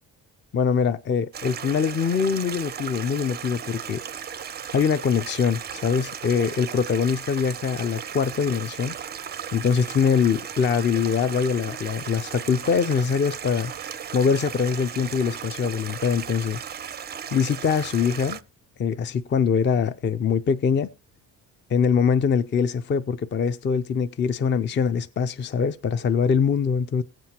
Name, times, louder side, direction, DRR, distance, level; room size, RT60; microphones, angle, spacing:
voice 1, 0.5-4.0 4.7-8.9 9.5-13.7 14.1-16.6 17.3-18.4 18.8-20.9 21.7-27.0, left 6 dB, 30° left, 0.5 m, -23 dB
Stream, 1.3-18.4, right 8 dB, 30° right, 0.4 m, -36 dB
17.0 x 7.6 x 2.8 m
cardioid pair, 120°, 36 cm